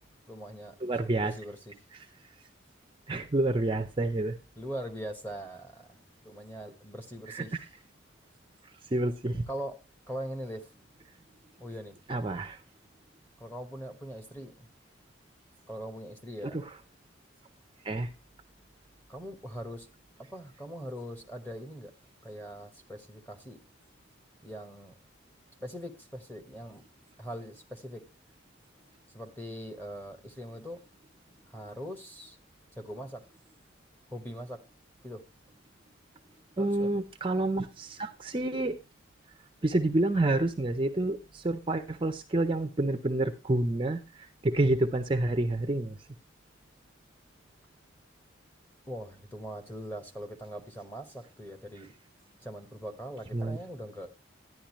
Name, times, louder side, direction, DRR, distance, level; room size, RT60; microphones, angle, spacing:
voice 1, 0.3-1.8 4.6-7.7 9.5-9.8 10.1-10.7 11.6-12.0 13.4-14.7 15.7-16.6 19.1-19.9 20.3-21.9 22.2-23.6 24.4-25.0 25.6-26.8 27.2-28.0 29.1-30.8 31.5-32.4 32.8-33.2 34.1-34.6 35.0-35.2 36.6-37.0 48.9-51.9 52.4-54.1, equal, 10° left, 6 dB, 1.1 m, -41 dB
voice 2, 0.8-1.3 3.1-4.3 7.3-7.4 8.9-9.4 12.1-12.6 17.9-18.1 36.6-38.8 39.6-44.0 44.4-45.9 53.3-53.6, right 2 dB, 25° right, 7 dB, 0.5 m, -28 dB
10.5 x 10.0 x 3.0 m, 0.26 s
head